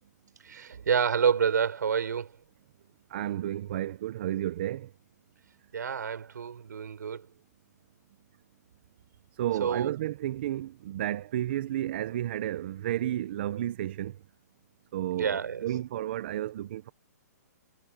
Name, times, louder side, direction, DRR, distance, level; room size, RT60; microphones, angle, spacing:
voice 1, 0.4-2.3 5.7-7.3 9.6-9.9 15.2-15.7, right 7 dB, 85° right, 4.6 m, -28 dB
voice 2, 3.1-4.9 9.4-14.2 14.9-16.9, right 13 dB, 35° right, 0.6 m, -32 dB
hypercardioid pair, 170°, 9 cm